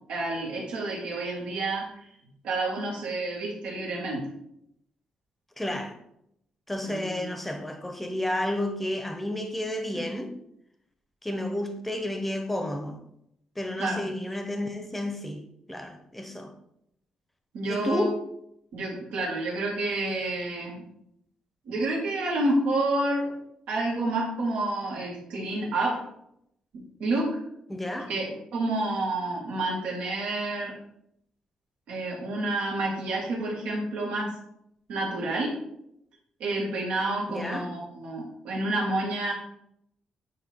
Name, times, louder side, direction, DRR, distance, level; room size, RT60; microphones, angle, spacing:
voice 1, 0.1-1.9 2.4-4.3 6.8-7.3 10.0-10.1 13.8-14.0 17.5-18.1 18.7-20.8 21.7-23.3 23.7-26.0 26.7-27.4 28.1-30.7 31.9-34.3 34.9-35.5 36.4-39.3, right 2 dB, 85° right, 2.2 m, -29 dB
voice 2, 5.6-5.9 6.7-10.3 11.2-13.0 13.6-16.5 17.7-18.2 27.7-28.1 37.3-37.7, left 1 dB, 5° left, 0.7 m, -31 dB
8.7 x 2.9 x 4.4 m
cardioid pair, 155°, 2 cm